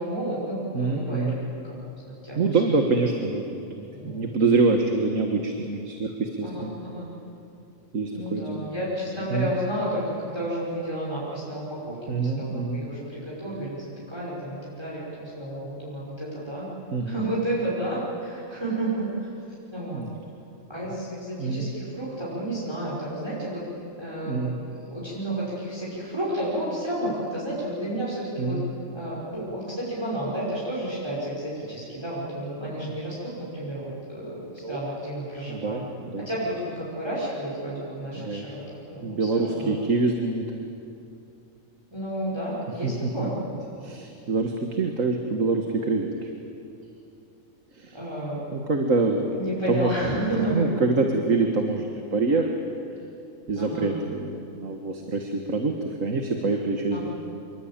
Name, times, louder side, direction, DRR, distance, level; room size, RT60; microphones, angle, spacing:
voice 1, 0.0-1.4 2.0-2.8 3.9-4.3 6.4-7.1 8.1-16.7 17.1-19.3 19.7-20.0 20.7-23.6 24.0-28.6 28.9-35.8 36.2-38.6 38.9-39.7 41.9-43.4 47.9-48.5 49.3-50.9 53.6-53.9 56.9-57.1, right 1 dB, 20° right, -7 dB, 5.7 m, -31 dB
voice 2, 0.7-1.4 2.4-3.4 3.8-6.7 7.9-8.7 9.3-9.5 12.1-12.8 16.9-17.2 19.9-20.1 21.4-21.7 24.2-24.6 28.4-28.7 32.6-32.8 34.6-34.8 35.5-36.3 38.1-38.5 39.0-40.7 42.8-43.3 43.8-46.3 47.8-48.0 48.5-49.4 49.7-49.9 50.5-52.5 53.5-57.1, right 3 dB, 75° right, 3 dB, 1.9 m, -25 dB
26.0 x 23.5 x 8.9 m, 2.8 s
omnidirectional pair, 1.4 m